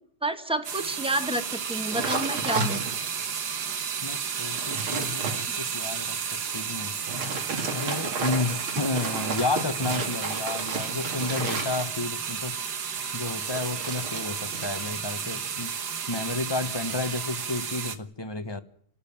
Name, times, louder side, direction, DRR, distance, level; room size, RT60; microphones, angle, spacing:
voice 1, 0.2-2.8 5.5-5.6, right 2 dB, 5° right, 8 dB, 1.2 m, -29 dB
sound 1, 0.6-18.0, right 7 dB, 55° right, 1.7 m, -32 dB
sound 2, 1.9-3.2 3.7-3.8 4.3-5.4 7.0-12.2 13.2-14.9 15.2-15.6, right 3 dB, 75° right, 3.7 m, -33 dB
voice 2, 4.0-6.2 6.5-7.0 7.7-12.6 13.1-15.7 16.1-18.6, left 3 dB, 20° left, 10 dB, 0.8 m, -31 dB
29.5 x 13.0 x 8.7 m, 0.62 s
omnidirectional pair, 2.3 m